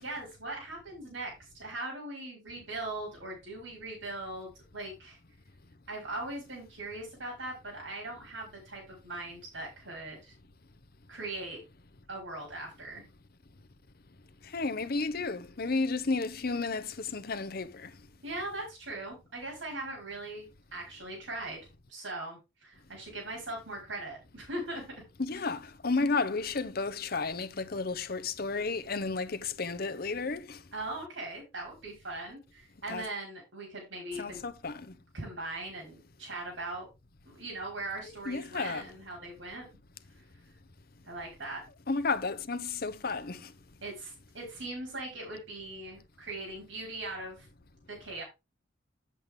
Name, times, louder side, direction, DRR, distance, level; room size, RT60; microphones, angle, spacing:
voice 1, 0.0-5.2 5.9-10.3 11.1-11.6 12.1-13.0 18.2-21.6 21.9-24.8 30.7-34.4 35.1-36.9 37.3-39.7 41.1-41.6 43.8-47.5 47.9-48.2, right 2 dB, 90° right, 4.9 m, -40 dB
voice 2, 14.5-17.9 25.2-30.6 32.9-33.1 34.1-34.9 38.3-38.9 41.9-43.5, left 3 dB, 55° left, 0.9 m, -32 dB
8.5 x 7.7 x 3.6 m
head